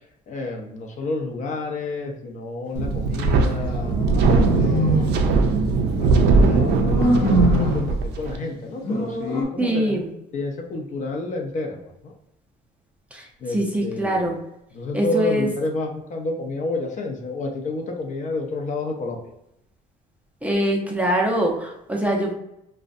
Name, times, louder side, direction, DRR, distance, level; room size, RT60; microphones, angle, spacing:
voice 1, 0.3-3.9 4.5-5.5 6.0-6.7 7.1-10.0 10.3-12.1 13.4-14.3 14.7-19.2, left 2 dB, 45° left, 2 dB, 0.5 m, -30 dB
Wind, 2.7-8.4, right 3 dB, 75° right, 0.4 m, -20 dB
sound 1, 3.6-5.2 6.4-7.9 8.8-9.5, equal, 80° left, 0.8 m, -24 dB
voice 2, 9.6-10.1 13.1-14.4 14.9-15.5 20.4-22.3, right 1 dB, 10° right, -1 dB, 0.4 m, -23 dB
2.5 x 2.1 x 2.4 m, 0.82 s
cardioid pair, 110°, 17 cm